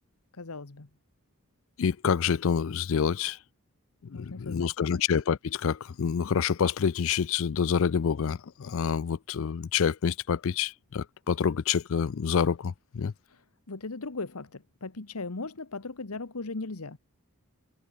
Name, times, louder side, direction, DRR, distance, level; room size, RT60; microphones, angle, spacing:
voice 1, 0.3-0.9 4.1-5.0 13.3-17.0, left 3 dB, 80° left, 1.3 m, -38 dB
voice 2, 1.8-3.4 4.0-13.1, left 6 dB, 60° left, 0.4 m, -27 dB
head